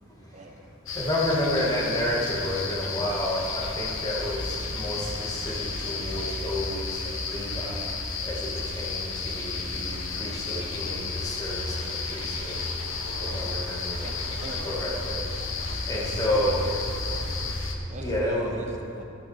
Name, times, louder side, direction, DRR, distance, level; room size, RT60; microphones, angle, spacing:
voice 1, 0.0-0.6 14.0-14.7 17.9-19.0, right 1 dB, 35° right, 3 dB, 1.1 m, -43 dB
sound 1, 0.9-17.8, left 4 dB, 70° left, 1.2 m, -32 dB
voice 2, 1.0-4.4 4.7-5.5 5.9-6.9 7.3-7.9 8.3-8.5 8.7-12.6 13.3-14.0 14.6-15.2 15.9-16.5 18.0-18.6, left 1 dB, 20° left, -5 dB, 2.3 m, -30 dB
voice 3, 13.0-13.7 14.2-14.7 15.7-17.6, right 2 dB, 65° right, 8 dB, 0.7 m, -44 dB
14.5 x 8.7 x 4.9 m, 2.6 s
head